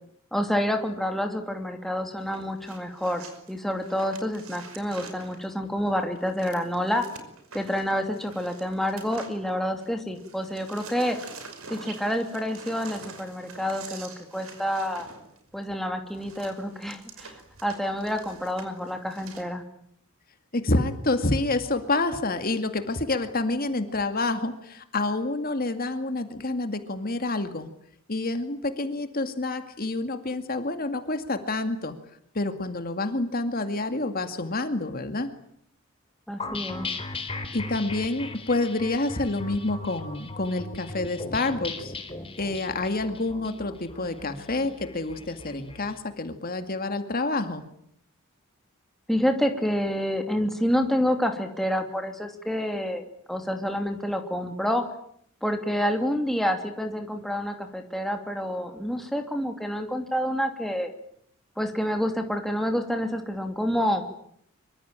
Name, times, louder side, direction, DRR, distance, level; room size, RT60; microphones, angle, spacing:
voice 1, 0.3-7.0 7.5-11.2 11.7-15.1 15.5-17.4 17.6-19.6 36.3-36.9 49.1-54.8 55.4-60.9 61.6-64.0, equal, ahead, 4 dB, 2.7 m, -28 dB
sound 1, 2.2-9.9 10.1-19.4, right 4 dB, 85° right, 5.6 m, -46 dB
voice 2, 20.5-27.7 28.1-32.0 32.3-35.3 37.5-41.9 42.4-47.7, left 2 dB, 45° left, 8 dB, 2.2 m, -28 dB
sound 2, 36.4-45.9, left 3 dB, 25° left, 3.7 m, -37 dB
25.0 x 24.5 x 9.0 m, 0.69 s
head